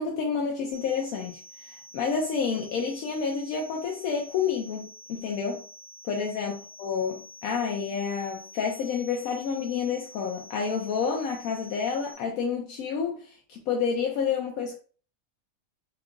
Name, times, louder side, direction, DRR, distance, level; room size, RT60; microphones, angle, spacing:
voice 1, 0.0-5.6 6.1-14.8, left 6 dB, 85° left, 0 dB, 1.0 m, -29 dB
sound 1, 0.7-12.1, left 1 dB, 50° right, 0.9 m, -48 dB
2.9 x 2.4 x 3.6 m, 0.40 s
omnidirectional pair, 1.4 m